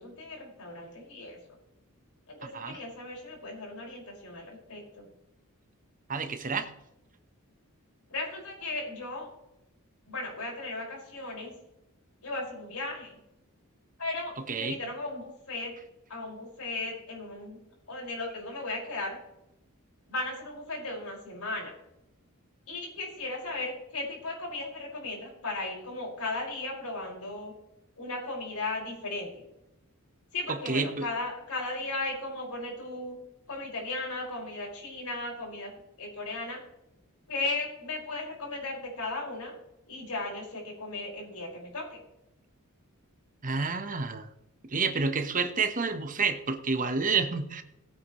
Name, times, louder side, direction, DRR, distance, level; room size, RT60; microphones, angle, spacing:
voice 1, 0.0-1.4 2.3-5.1 8.1-9.3 10.0-11.5 12.2-13.2 14.0-15.7 16.1-17.6 17.9-19.2 20.1-21.7 22.7-27.5 28.0-29.4 30.3-33.2 33.5-35.7 36.0-36.6 37.3-39.5 39.9-42.0, left 2 dB, 80° left, -2 dB, 5.4 m, -36 dB
voice 2, 6.1-6.7 14.5-14.8 30.5-31.1 43.4-44.3 44.7-47.6, right 4 dB, 40° right, 8 dB, 1.1 m, -29 dB
17.0 x 9.2 x 3.1 m, 0.85 s
head